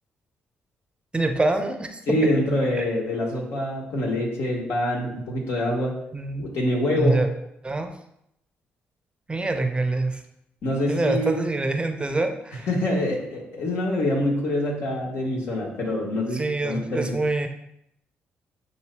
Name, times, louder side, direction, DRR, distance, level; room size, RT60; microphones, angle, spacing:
voice 1, 1.1-2.3 2.8-2.9 6.1-6.5 6.9-7.3 7.6-7.9 9.3-10.2 10.9-12.7 16.3-17.5, right 2 dB, 20° right, 5 dB, 0.6 m, -25 dB
voice 2, 2.1-5.9 6.4-7.2 10.6-11.4 12.7-17.2, left 1 dB, 70° left, -2 dB, 1.4 m, -25 dB
7.8 x 2.7 x 2.2 m, 0.77 s
supercardioid pair, 60°, 5 cm